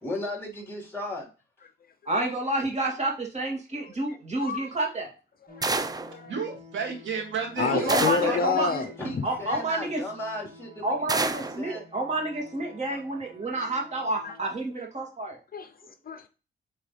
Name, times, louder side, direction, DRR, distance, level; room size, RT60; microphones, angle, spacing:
voice 1, 0.0-1.3 7.6-10.9 11.2-11.8, left 1 dB, 10° left, 3.5 m, -35 dB
voice 2, 2.1-5.1 7.7-8.7 9.2-10.0 10.8-15.4, right 2 dB, 35° right, 2.3 m, -29 dB
voice 3, 3.8-4.7 5.5-6.4 7.6-9.3 12.9-13.0 14.2-14.4 15.5-16.3, left 6 dB, 45° left, 0.6 m, -31 dB
sound 1, 5.5-14.6, left 3 dB, 30° left, 2.5 m, -50 dB
sound 2, 5.6-6.1 7.9-8.4 11.1-11.6, right 3 dB, 20° right, 0.6 m, -28 dB
voice 4, 6.3-8.0 8.2-8.6, right 5 dB, 75° right, 2.1 m, -31 dB
8.7 x 3.7 x 3.2 m
cardioid pair, 95°, 20 cm